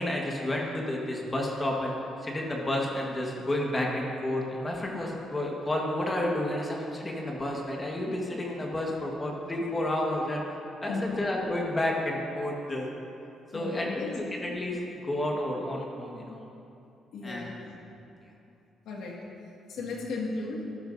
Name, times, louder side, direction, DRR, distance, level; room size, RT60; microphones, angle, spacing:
voice 1, 0.0-10.4 10.8-12.9 13.5-14.8 15.0-16.4 17.2-17.5, left 1 dB, 20° left, -1 dB, 1.5 m, -31 dB
voice 2, 13.5-14.1 17.1-17.8 18.9-19.3 19.7-20.6, left 3 dB, 85° left, -2 dB, 1.9 m, -35 dB
13.0 x 12.5 x 2.7 m, 2.7 s
cardioid pair, 110°, 0 cm